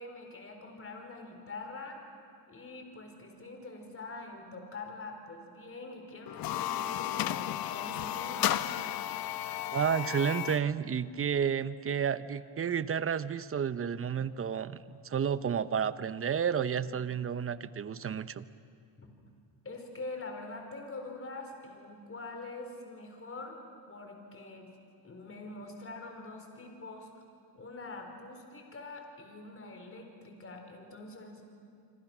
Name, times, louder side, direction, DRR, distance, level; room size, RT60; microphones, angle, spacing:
voice 1, 0.0-2.0 2.5-8.6 19.0-19.1 19.6-24.7 25.0-27.1 27.5-31.4, left 2 dB, 30° left, 4 dB, 4.5 m, -44 dB
sound 1, 6.3-10.7, left 12 dB, 55° left, 0.9 m, -33 dB
voice 2, 9.7-18.5, right 7 dB, 30° right, 15 dB, 0.8 m, -31 dB
26.5 x 26.0 x 6.2 m, 2.4 s
cardioid pair, 95°, 43 cm